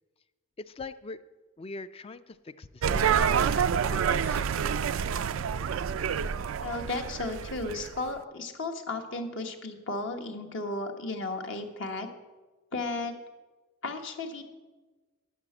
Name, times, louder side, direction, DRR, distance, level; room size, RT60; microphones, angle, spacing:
voice 1, 0.6-1.2 1.6-4.8, left 3 dB, 30° left, 13 dB, 0.4 m, -43 dB
sound 1, 2.8-8.0, right 7 dB, 90° right, 0.4 m, -28 dB
voice 2, 6.6-12.1 12.7-13.1 13.8-14.4, left 2 dB, 65° left, 4 dB, 1.2 m, -34 dB
11.0 x 5.8 x 8.7 m, 1.2 s
head